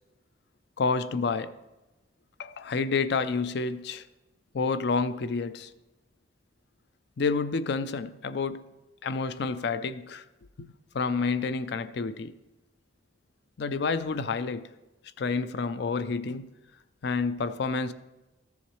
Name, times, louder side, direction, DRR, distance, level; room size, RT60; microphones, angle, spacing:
voice 1, 0.8-1.6 2.4-4.1 4.5-5.7 7.2-8.7 9.0-10.2 10.6-10.7 10.9-12.3 13.6-14.7 15.2-16.5 17.0-17.9, left 4 dB, 60° left, 0.4 m, -29 dB
14.5 x 7.1 x 3.1 m
head